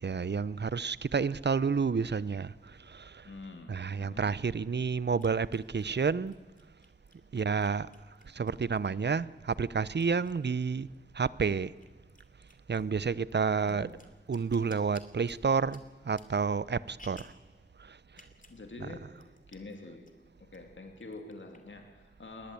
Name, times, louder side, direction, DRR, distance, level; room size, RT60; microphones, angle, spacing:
voice 1, 0.0-2.5 2.9-3.3 3.7-6.3 7.3-7.9 8.3-10.9 11.1-11.7 12.7-13.9 14.3-17.3 17.9-18.0 18.8-18.9, right 5 dB, 60° right, 0.7 m, -30 dB
voice 2, 3.2-4.3 13.6-14.0 18.4-20.1 20.4-22.5, left 3 dB, 75° left, 2.6 m, -47 dB
sound 1, 3.4-3.5 5.2-9.1 9.5-11.0 11.3-17.5 18.1-18.6 18.9-19.0 19.2-19.8 20.1-20.6 21.0-21.8, left 2 dB, 45° left, 2.6 m, -59 dB
21.0 x 19.0 x 8.4 m
wide cardioid pair, 50°, 20 cm